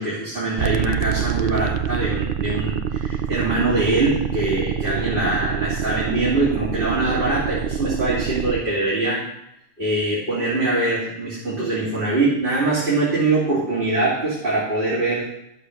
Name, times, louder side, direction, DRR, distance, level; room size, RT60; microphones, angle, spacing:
voice 1, 0.0-9.2 9.8-15.4, right 2 dB, 40° right, -8 dB, 3.0 m, -23 dB
sound 1, 0.6-8.6, right 8 dB, 60° right, 0.6 m, -26 dB
11.5 x 6.6 x 6.4 m, 0.78 s
omnidirectional pair, 1.4 m